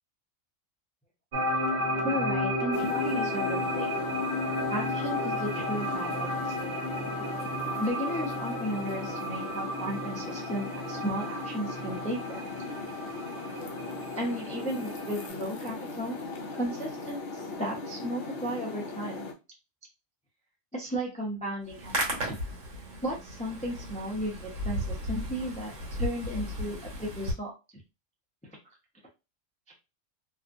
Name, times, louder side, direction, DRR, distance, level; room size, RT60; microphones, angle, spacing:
sound 1, 1.3-15.3, left 1 dB, 40° right, 0.9 m, -33 dB
voice 1, 2.0-3.9 4.7-6.5 7.8-12.5 14.1-16.2 16.6-19.3 20.7-22.4 23.0-25.7 26.0-27.5, equal, 10° left, -1 dB, 0.4 m, -34 dB
sound 2, 2.7-19.3, left 3 dB, 60° left, 0.7 m, -39 dB
Hands, 21.6-27.3, equal, 80° right, 1.4 m, -35 dB
2.8 x 2.3 x 2.5 m, 0.28 s
omnidirectional pair, 1.3 m